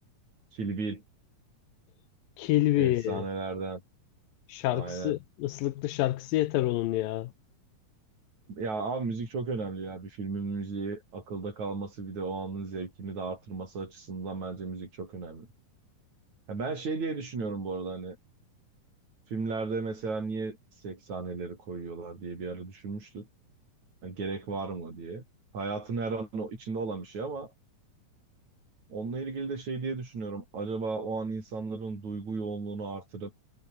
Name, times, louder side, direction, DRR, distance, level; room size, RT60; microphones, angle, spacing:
voice 1, 0.5-1.0 2.8-3.8 4.7-5.1 8.5-15.5 16.5-18.2 19.3-20.6 20.8-23.3 24.0-25.2 25.5-27.5 28.9-33.3, right 4 dB, 55° right, 7.4 m, -35 dB
voice 2, 2.4-3.2 4.5-7.3, left 16 dB, 85° left, 2.6 m, -27 dB
omnidirectional pair, 4.0 m